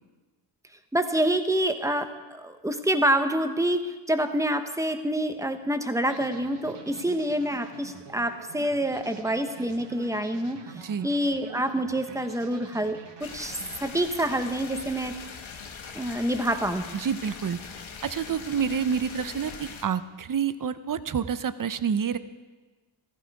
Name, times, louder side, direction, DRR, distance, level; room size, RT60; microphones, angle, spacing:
voice 1, 0.9-15.1 15.9-16.9, right 1 dB, 5° right, 7 dB, 1.0 m, -27 dB
sound 1, 6.0-15.0, right 5 dB, 60° right, 1.3 m, -47 dB
voice 2, 10.7-11.1 16.9-17.6 18.0-22.2, right 7 dB, 45° right, 13 dB, 0.7 m, -28 dB
sound 2, 13.2-19.8, left 6 dB, 75° left, 1.4 m, -42 dB
15.0 x 15.0 x 4.8 m, 1.3 s
wide cardioid pair, 95°, 47 cm